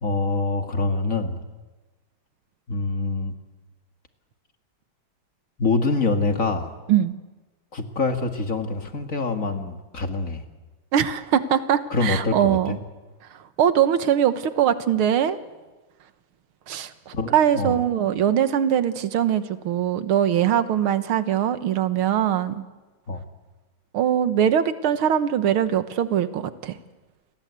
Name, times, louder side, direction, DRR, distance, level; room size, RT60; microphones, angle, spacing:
voice 1, 0.0-1.4 2.7-3.3 5.6-6.7 7.7-10.4 11.9-12.8 17.1-17.8 23.1-23.2, left 3 dB, 40° left, 6 dB, 2.2 m, -25 dB
voice 2, 10.9-12.8 13.3-15.4 16.7-22.6 23.9-26.8, right 9 dB, 80° right, 12 dB, 2.0 m, -22 dB
29.0 x 22.0 x 8.2 m, 1.2 s
omnidirectional pair, 2.3 m